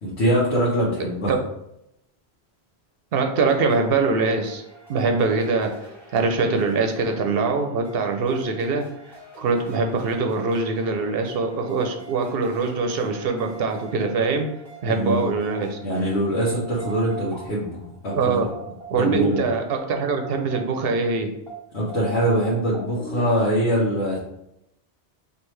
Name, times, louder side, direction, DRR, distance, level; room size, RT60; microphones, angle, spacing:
voice 1, 0.0-1.3 14.9-15.3 15.8-18.4 18.9-19.4 21.7-24.2, right 1 dB, 80° left, -7 dB, 1.2 m, -23 dB
voice 2, 3.1-4.6 4.9-8.9 9.4-14.5 14.8-15.8 18.2-18.5 18.9-21.3, right 4 dB, 65° right, 4 dB, 0.7 m, -23 dB
sound 1, 3.4-21.0 21.5-23.3, right 3 dB, ahead, 1.3 m, -42 dB
4.4 x 2.7 x 3.1 m, 0.81 s
omnidirectional pair, 1.1 m